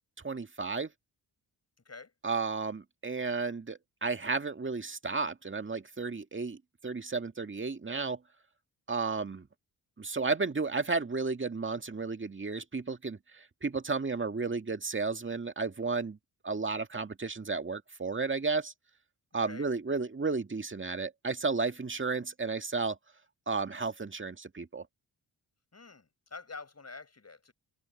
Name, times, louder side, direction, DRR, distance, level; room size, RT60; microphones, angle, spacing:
voice 1, 0.2-0.9 2.2-8.2 8.9-9.5 10.0-16.2 16.4-18.7 19.3-23.0 23.5-24.9, right 4 dB, 25° right, 2.1 m, -33 dB
voice 2, 25.7-27.5, left 4 dB, 35° left, 6.9 m, -47 dB
open air
hypercardioid pair, 50°, 45 cm